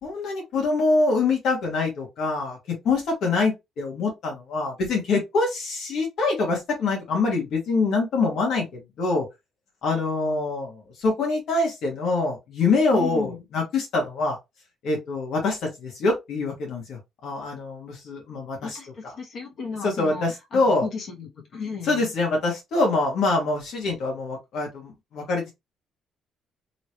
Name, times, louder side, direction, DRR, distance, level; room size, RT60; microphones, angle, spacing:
voice 1, 0.0-9.2 9.8-14.4 14.8-18.8 19.8-20.9 21.8-25.5, left 3 dB, 70° left, 1.5 m, -25 dB
voice 2, 12.9-13.4 18.6-20.2 20.5-22.0, left 5 dB, 55° left, 1.5 m, -34 dB
3.1 x 2.9 x 2.9 m
cardioid pair, 115°, 0 cm